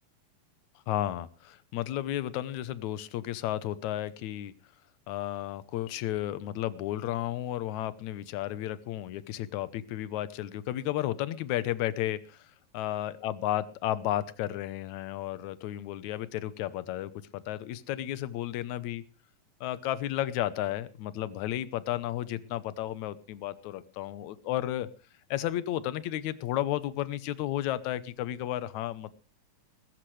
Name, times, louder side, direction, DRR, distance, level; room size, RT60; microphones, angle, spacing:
voice 1, 0.9-4.5 5.1-19.0 19.6-24.9 25.3-29.1, left 13 dB, 70° left, 16 dB, 2.1 m, -33 dB
20.5 x 14.0 x 3.3 m, 0.32 s
omnidirectional pair, 3.8 m